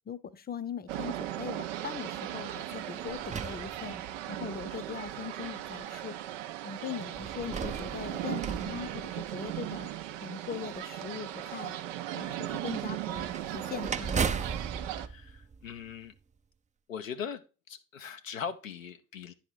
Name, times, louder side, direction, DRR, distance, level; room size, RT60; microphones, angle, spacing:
voice 1, 0.1-6.2 6.6-9.9 10.2-11.8 12.1-14.4, left 7 dB, 25° left, 0.7 m, -41 dB
sound 1, 0.9-15.1, right 13 dB, 70° right, 0.6 m, -37 dB
sound 2, 2.4-4.4 5.2-5.3 7.1-9.7 13.1-16.2, right 5 dB, 20° right, 0.5 m, -37 dB
voice 2, 15.0-16.1 16.9-17.4 17.7-19.3, left 7 dB, 85° left, 0.5 m, -40 dB
10.5 x 4.2 x 4.6 m
figure-of-eight pair, 40°, 39 cm